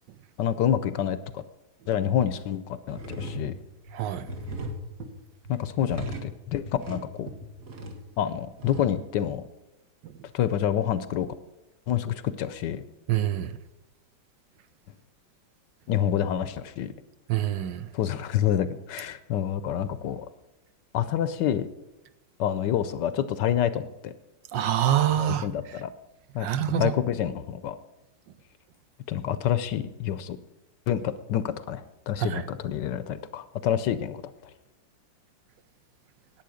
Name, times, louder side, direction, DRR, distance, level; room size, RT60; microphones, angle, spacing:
voice 1, 0.4-1.4 1.9-3.5 5.5-7.3 8.2-9.4 10.3-11.3 11.9-12.8 15.9-16.9 17.9-20.3 20.9-21.7 22.4-24.1 25.2-25.9 26.3-27.8 29.1-30.4 30.9-34.2, left 10 dB, 70° left, 1.2 m, -27 dB
sound 1, 2.5-2.6 2.9-8.8, equal, 45° right, 1.7 m, -38 dB
voice 2, 3.9-4.3 10.0-10.1 13.1-13.5 17.3-17.9 24.5-25.5 26.4-26.9 32.2-32.4, right 11 dB, 75° right, 1.3 m, -26 dB
10.5 x 8.7 x 6.3 m
omnidirectional pair, 2.1 m